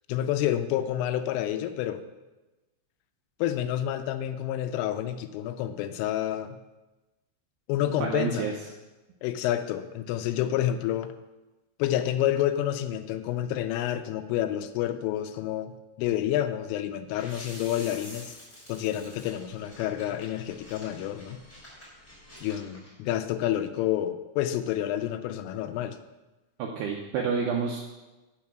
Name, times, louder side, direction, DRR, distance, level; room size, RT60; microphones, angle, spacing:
voice 1, 0.1-2.0 3.4-6.6 7.7-8.5 9.2-11.1 11.8-15.7 16.0-18.4 18.7-21.4 22.4-26.0, left 12 dB, 85° left, 9 dB, 3.2 m, -29 dB
voice 2, 8.0-8.5 26.6-27.8, right 6 dB, 80° right, 0 dB, 2.3 m, -29 dB
sound 1, 17.1-22.9, left 1 dB, 15° left, 3.5 m, -48 dB
8.3 x 7.1 x 6.0 m, 1.1 s
omnidirectional pair, 5.6 m